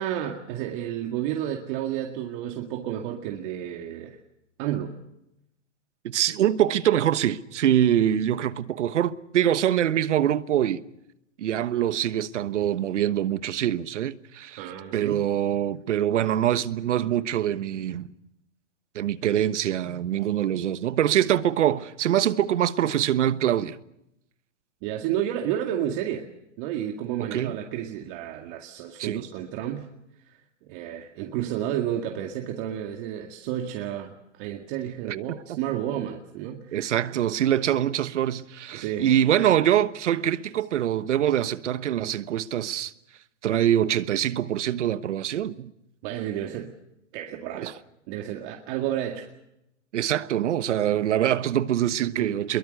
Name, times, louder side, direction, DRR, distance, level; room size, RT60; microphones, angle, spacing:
voice 1, 0.0-4.2 4.6-4.9 14.6-15.2 24.8-26.3 26.6-29.9 30.3-36.9 38.7-39.1 46.0-46.7 47.1-47.7 48.1-49.3 52.0-52.3, right 11 dB, 45° right, 2.1 m, -31 dB
voice 2, 6.0-10.8 11.4-14.7 14.9-18.1 18.9-23.8 27.2-27.5 29.0-29.2 36.7-42.9 43.4-45.7 47.6-47.7 49.9-52.6, right 11 dB, 75° right, 1.2 m, -24 dB
25.0 x 22.5 x 6.6 m
hypercardioid pair, 125°, 36 cm